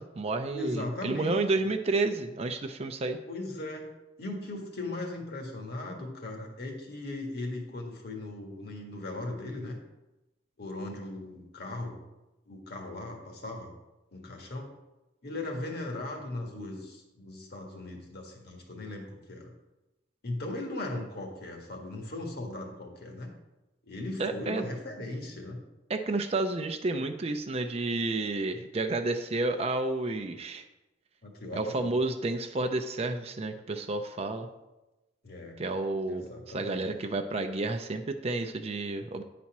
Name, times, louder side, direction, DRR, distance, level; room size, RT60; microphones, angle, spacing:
voice 1, 0.0-3.2 24.2-24.6 25.9-30.7 31.5-34.5 35.6-39.2, right 2 dB, 35° right, 6 dB, 0.5 m, -30 dB
voice 2, 0.5-1.4 3.3-3.9 4.2-9.8 10.6-12.0 12.5-13.7 14.1-14.7 15.2-19.5 20.2-23.3 23.9-25.6 31.2-31.9 35.2-35.6 36.0-36.8, left 2 dB, 55° left, 1 dB, 1.6 m, -38 dB
9.6 x 4.2 x 5.9 m, 1.0 s
head